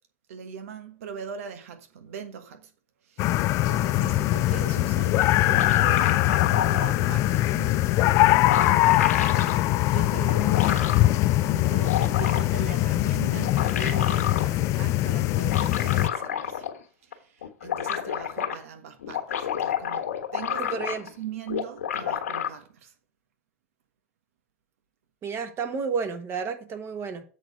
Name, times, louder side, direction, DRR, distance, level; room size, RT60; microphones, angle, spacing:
voice 1, 0.3-2.7 3.0-6.2 6.5-16.7 17.0-22.9, right 8 dB, 75° right, 1.5 m, -41 dB
sound 1, 3.2-16.1, left 16 dB, 40° left, 0.4 m, -22 dB
sound 2, 5.2-6.9 7.9-8.0 8.2-9.6 10.3-11.1 11.6-12.6 13.3-14.5 15.4-16.8 17.1-17.2 17.4-18.6 19.0-21.2 21.5-22.5, left 9 dB, 90° left, 1.6 m, -30 dB
voice 2, 20.7-21.0 25.2-27.2, right 5 dB, 30° right, 1.4 m, -31 dB
7.8 x 4.5 x 6.0 m
hypercardioid pair, 115°, 8 cm